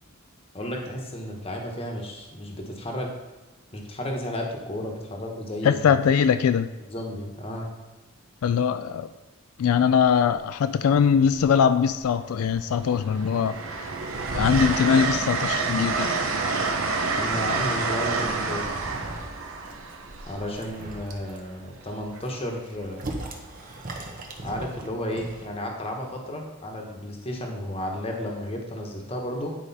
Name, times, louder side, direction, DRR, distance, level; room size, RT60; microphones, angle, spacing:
voice 1, 0.5-3.1 3.7-6.0 6.9-7.7 17.1-18.9 20.3-23.0 24.4-29.6, left 1 dB, 30° left, 1 dB, 1.2 m, -33 dB
voice 2, 5.6-6.7 8.4-9.1 9.6-13.9 14.3-16.1, left 7 dB, 90° left, 10 dB, 0.3 m, -22 dB
Train, 11.3-12.0 12.5-21.2 22.8-23.1, right 3 dB, 70° right, 0.8 m, -28 dB
sound 1, 18.7-19.4 19.7-20.1 20.5-21.4 22.0-25.5, right 2 dB, 40° right, 1.0 m, -38 dB
9.9 x 4.8 x 4.2 m, 1.1 s
head